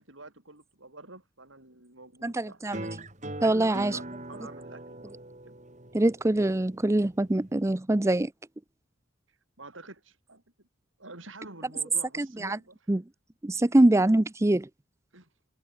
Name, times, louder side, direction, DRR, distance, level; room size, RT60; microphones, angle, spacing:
voice 1, 0.0-2.7 3.4-5.5 9.6-10.4 11.0-12.9 15.1-15.3, right 2 dB, 70° right, 7.0 m, -47 dB
voice 2, 2.2-2.8 3.4-4.0 5.9-8.3 12.2-12.6 12.9-13.0 13.4-14.7, right 1 dB, 15° right, 0.5 m, -24 dB
sound 1, 2.7-7.7, right 1 dB, 35° right, 4.6 m, -42 dB
head